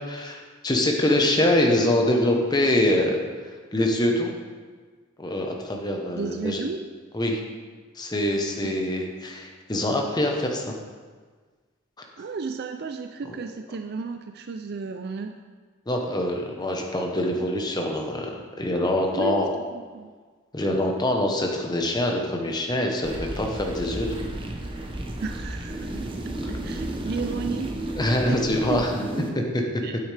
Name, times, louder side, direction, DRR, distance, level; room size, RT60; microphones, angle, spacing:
voice 1, 0.1-3.2 3.7-4.3 5.2-6.6 7.1-7.4 8.0-10.7 15.9-19.5 20.5-24.3 28.0-28.9 29.3-29.6, left 1 dB, 20° left, 2 dB, 1.0 m, -24 dB
voice 2, 6.2-6.9 8.6-8.7 12.2-15.4 19.1-20.1 25.2-26.1 26.5-29.0 29.8-30.0, right 4 dB, 50° right, 6 dB, 0.4 m, -33 dB
sound 1, 23.0-29.3, right 1 dB, 25° right, 0.8 m, -33 dB
8.8 x 8.6 x 3.4 m, 1.5 s
head